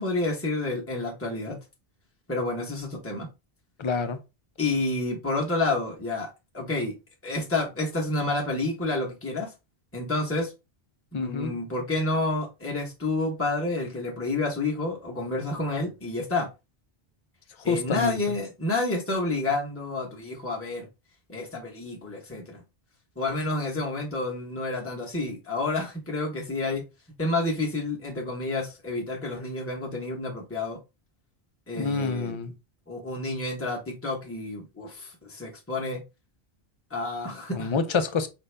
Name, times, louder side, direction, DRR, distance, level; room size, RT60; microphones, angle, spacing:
voice 1, 0.0-1.6 2.3-3.3 4.6-6.9 7.2-9.5 9.9-10.5 11.1-16.5 17.6-20.9 21.3-22.6 23.2-26.8 27.2-30.8 31.7-32.4 32.9-36.0 36.9-37.7, left 2 dB, 15° left, 1.0 m, -29 dB
voice 2, 3.8-4.2 11.1-11.6 17.7-18.2 31.7-32.5 37.5-38.3, left 4 dB, 35° left, 0.5 m, -27 dB
5.3 x 2.6 x 3.3 m
omnidirectional pair, 1.1 m